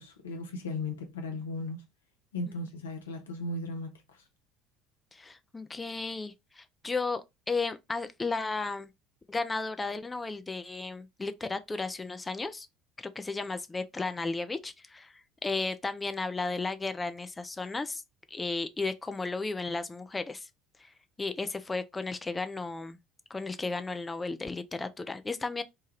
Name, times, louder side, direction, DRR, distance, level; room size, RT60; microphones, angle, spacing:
voice 1, 0.0-1.8 2.3-4.2, left 2 dB, 80° left, 0.6 m, -36 dB
voice 2, 5.1-8.9 9.3-12.7 13.0-18.0 18.3-20.5 20.8-20.9 21.2-23.0 23.3-25.6, left 3 dB, 20° left, 0.4 m, -34 dB
3.0 x 2.2 x 3.0 m
figure-of-eight pair, 60°, 0 cm